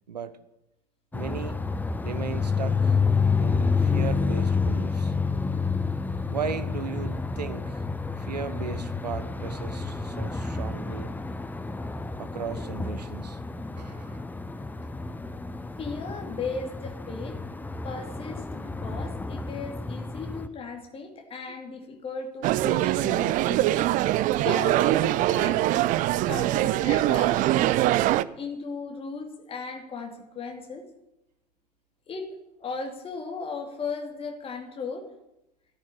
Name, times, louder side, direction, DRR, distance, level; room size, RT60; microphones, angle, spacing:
sound 1, 1.1-20.5, left 4 dB, 10° left, 1.0 m, -29 dB
voice 1, 1.1-1.6 2.0-3.0 3.4-5.1 6.3-7.8 8.2-11.1 12.2-13.4 13.8-14.2 21.5-21.6 24.3-24.5, right 7 dB, 75° right, 12 dB, 1.2 m, -36 dB
voice 2, 15.8-17.4 17.8-23.6 24.4-25.6 26.3-27.4 28.3-30.9 32.1-35.1, left 4 dB, 25° left, 3 dB, 2.7 m, -36 dB
sound 2, 22.4-28.2, right 15 dB, 40° right, 0.6 m, -23 dB
14.5 x 10.5 x 8.6 m, 0.89 s
figure-of-eight pair, 75°, 21 cm